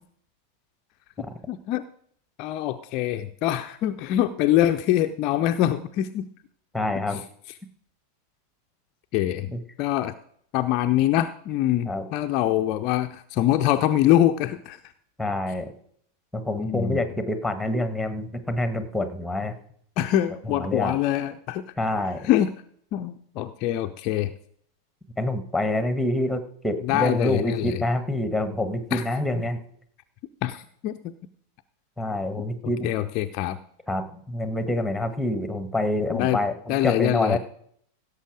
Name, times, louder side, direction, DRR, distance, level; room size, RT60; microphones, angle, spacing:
voice 1, 1.5-1.9 2.4-6.3 7.1-7.2 9.1-9.5 9.8-10.1 10.5-14.8 16.6-17.0 20.0-21.6 22.2-22.5 22.9-24.3 26.8-27.8 28.9-29.0 29.3-29.4 30.4-31.1 32.8-33.6 36.1-36.4 36.7-37.4, left 12 dB, 40° left, 7 dB, 0.6 m, -24 dB
voice 2, 6.7-7.2 9.5-9.6 11.8-12.1 15.2-15.7 16.3-19.5 20.4-20.9 21.8-22.3 25.2-29.6 32.0-32.9 33.9-37.4, left 1 dB, ahead, 10 dB, 1.5 m, -27 dB
16.5 x 6.9 x 4.9 m, 0.64 s
figure-of-eight pair, 90°, 0 cm